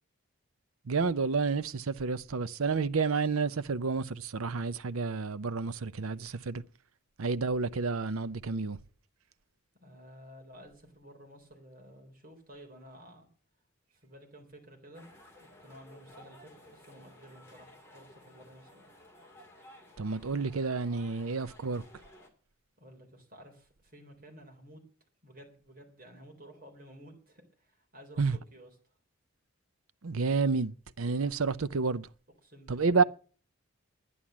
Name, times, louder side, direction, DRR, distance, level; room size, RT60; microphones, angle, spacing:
voice 1, 0.9-6.6 7.2-8.8 20.0-21.8 28.2-28.4 30.0-32.1 32.7-33.0, right 4 dB, 80° right, 0.7 m, -30 dB
voice 2, 9.8-13.3 13.9-15.1 15.4-18.8 22.8-24.8 25.2-28.7 32.4-33.1, equal, 40° right, 3.8 m, -53 dB
sound 1, 14.9-22.3, left 1 dB, 10° left, 2.6 m, -55 dB
11.0 x 10.0 x 7.3 m
head